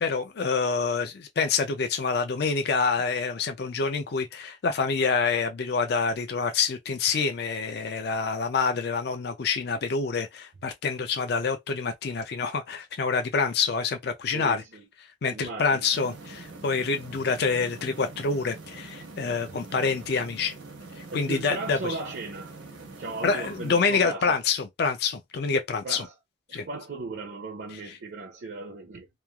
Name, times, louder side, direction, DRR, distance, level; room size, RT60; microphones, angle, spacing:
voice 1, 0.0-14.6 15.2-20.5 21.1-21.8 23.2-26.0 26.5-26.7, left 5 dB, 55° left, 0.4 m, -27 dB
voice 2, 14.3-14.9 15.3-15.9 19.5-19.6 21.1-22.5 23.0-24.4 25.8-26.1 26.5-29.1, right 3 dB, 55° right, 0.5 m, -37 dB
sound 1, 15.9-23.8, right 3 dB, 85° right, 0.8 m, -44 dB
3.1 x 2.3 x 2.3 m
head